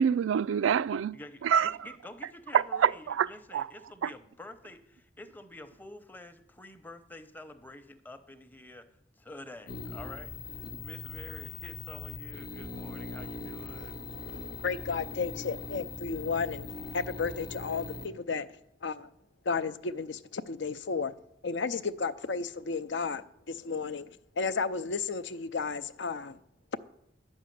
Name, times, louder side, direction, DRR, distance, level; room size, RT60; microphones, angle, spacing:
voice 1, 0.0-1.8 2.5-3.7 4.0-4.1, right 8 dB, 85° right, 0.3 m, -26 dB
voice 2, 1.1-8.9 9.2-14.0, left 1 dB, 10° left, 0.7 m, -48 dB
sound 1, 9.7-18.1, left 3 dB, 50° left, 1.0 m, -41 dB
voice 3, 13.7-16.7 16.9-18.5 18.8-19.1 19.5-21.1 21.4-26.4, left 4 dB, 70° left, 0.6 m, -33 dB
11.0 x 6.3 x 9.2 m
head